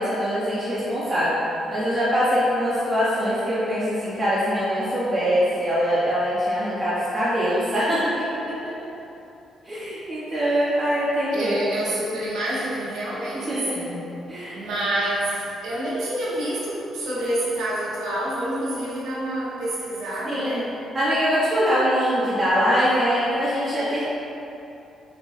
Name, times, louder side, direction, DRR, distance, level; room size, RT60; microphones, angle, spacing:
voice 1, 0.0-1.4 1.7-8.7 9.6-11.9 13.3-13.8 14.3-14.6 20.3-20.6 20.9-24.0, equal, 25° right, -11 dB, 0.8 m, -23 dB
voice 2, 11.3-14.1 14.5-20.7, right 1 dB, 85° right, -8 dB, 1.2 m, -28 dB
4.6 x 3.0 x 2.6 m, 2.8 s
cardioid pair, 90°, 0 cm